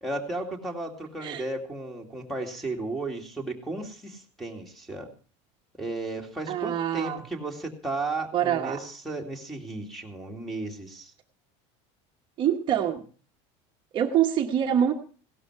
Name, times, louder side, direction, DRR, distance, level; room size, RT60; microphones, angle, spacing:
voice 1, 0.0-5.1 5.8-11.1, right 2 dB, ahead, -1 dB, 2.3 m, -34 dB
voice 2, 6.5-7.2 8.3-8.8 12.4-13.0 13.9-14.9, right 10 dB, 35° right, 3 dB, 1.2 m, -25 dB
17.0 x 12.5 x 4.7 m, 0.39 s
cardioid pair, 160°, 14 cm